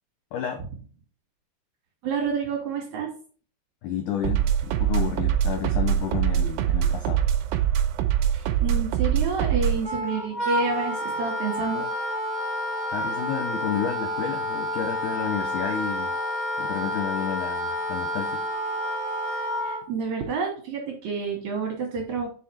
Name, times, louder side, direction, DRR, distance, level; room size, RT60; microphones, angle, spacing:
voice 1, 0.3-0.6 3.8-7.2 12.9-16.1 16.6-18.4, left 8 dB, 85° left, 4 dB, 1.8 m, -31 dB
voice 2, 2.0-3.1 8.3-11.9 19.6-22.3, right 5 dB, 65° right, 1 dB, 1.9 m, -29 dB
sound 1, 4.2-9.9, right 10 dB, 85° right, 2.1 m, -23 dB
Wind instrument woodwind instrument, 9.8-19.8, left 1 dB, 15° right, 2.0 m, -29 dB
5.7 x 5.1 x 4.3 m, 0.41 s
omnidirectional pair, 4.5 m